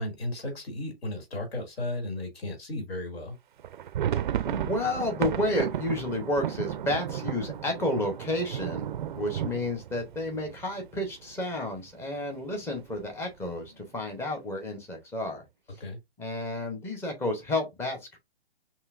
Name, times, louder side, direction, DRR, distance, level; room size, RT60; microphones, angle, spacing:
voice 1, 0.0-3.4 15.8-16.0, left 1 dB, 70° left, 2.4 m, -34 dB
sound 1, 3.6-11.3 11.6-11.7 12.0-12.2 12.8-13.3, right 10 dB, 50° right, 0.5 m, -33 dB
voice 2, 4.4-8.9 9.2-15.8 16.2-18.2, left 1 dB, 10° left, 0.8 m, -31 dB
5.5 x 2.7 x 2.5 m
hypercardioid pair, 145°, 32 cm